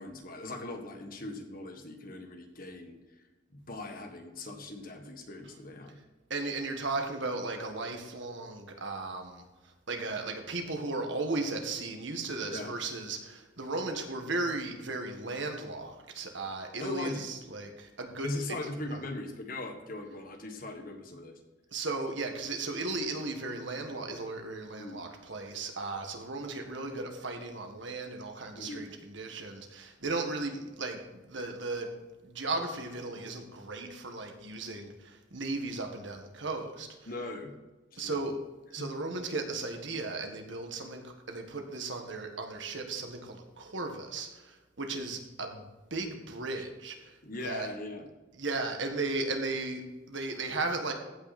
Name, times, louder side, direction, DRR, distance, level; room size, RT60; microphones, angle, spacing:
voice 1, 0.0-3.2 3.5-6.0 12.5-12.7 16.8-17.2 18.2-21.4 24.8-25.0 28.5-28.9 37.1-37.5 37.9-38.3 38.8-38.9 47.2-48.1, left 2 dB, 45° left, 5 dB, 1.5 m, -40 dB
voice 2, 6.3-9.4 9.9-18.6 18.9-19.0 21.7-31.9 32.2-36.9 38.0-38.4 38.7-47.7 48.4-50.9, right 3 dB, 65° right, 4 dB, 1.7 m, -36 dB
15.0 x 6.0 x 4.2 m, 1.2 s
head